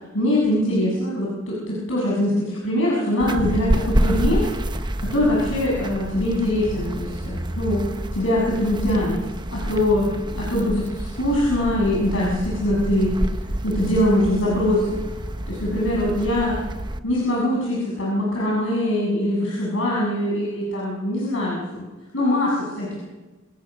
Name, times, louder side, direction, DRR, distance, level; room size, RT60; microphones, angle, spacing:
voice 1, 0.1-7.8 8.1-9.2 9.5-13.3 13.6-15.0 15.5-16.6 17.0-21.8 22.1-23.0, left 1 dB, 70° left, -4 dB, 7.1 m, -22 dB
sound 1, 3.2-17.0, right 1 dB, 20° right, 0.8 m, -28 dB
26.5 x 17.5 x 6.2 m, 1.2 s
head